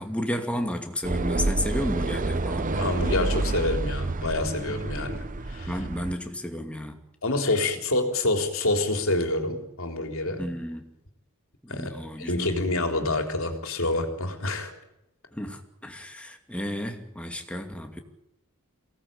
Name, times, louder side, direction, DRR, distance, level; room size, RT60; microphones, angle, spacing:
voice 1, 0.0-2.7 5.7-7.0 10.4-10.8 11.6-12.5 15.3-18.0, equal, 5° left, 2.5 m, -32 dB
sound 1, 1.0-6.1, right 2 dB, 35° right, 0.9 m, -28 dB
voice 2, 2.7-5.8 7.2-10.4 11.7-14.7, left 2 dB, 65° left, 3.6 m, -27 dB
23.5 x 18.0 x 8.9 m
head